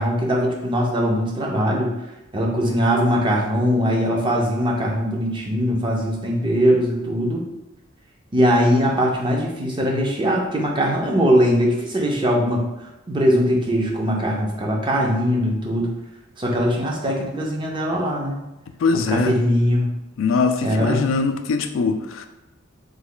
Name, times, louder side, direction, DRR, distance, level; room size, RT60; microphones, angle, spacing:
voice 1, 0.0-1.9 2.3-7.5 8.3-12.6 13.1-15.9 16.4-18.4 18.9-19.9 20.6-21.1, equal, 25° right, -1 dB, 0.5 m, -21 dB
voice 2, 18.8-19.4 20.2-22.3, left 4 dB, 75° left, 7 dB, 0.3 m, -21 dB
3.2 x 2.3 x 3.8 m, 0.98 s
head